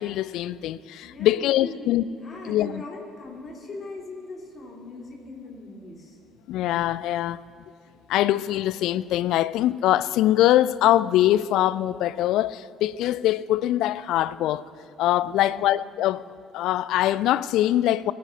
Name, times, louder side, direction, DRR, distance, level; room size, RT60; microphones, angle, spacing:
voice 1, 0.0-2.0 2.5-2.8 6.5-7.4 8.1-14.6 15.0-16.3 16.5-18.1, left 13 dB, 60° left, 0.3 m, -23 dB
voice 2, 1.0-1.9 2.2-6.2 15.3-15.6, left 2 dB, 40° left, 3.5 m, -40 dB
20.5 x 14.0 x 2.7 m
figure-of-eight pair, 50°, 0 cm